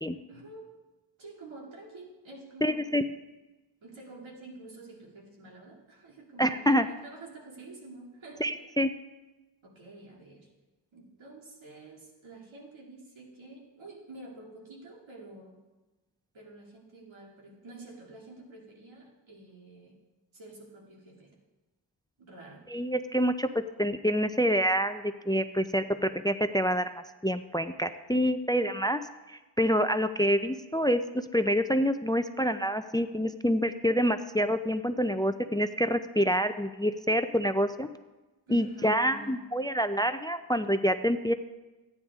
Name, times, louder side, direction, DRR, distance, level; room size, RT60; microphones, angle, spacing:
voice 1, 0.3-0.7 1.2-2.9 3.8-8.5 9.6-10.5 10.9-15.6 16.3-20.0 20.3-21.3 22.2-22.6 38.5-39.5, right 2 dB, 85° right, -2 dB, 2.5 m, -48 dB
voice 2, 2.6-3.0 6.4-6.9 8.4-8.9 22.7-26.9 27.2-29.0 29.3-37.9 38.5-41.3, equal, 10° left, 10 dB, 0.4 m, -27 dB
15.0 x 9.5 x 3.6 m, 1.1 s
cardioid pair, 60°, 46 cm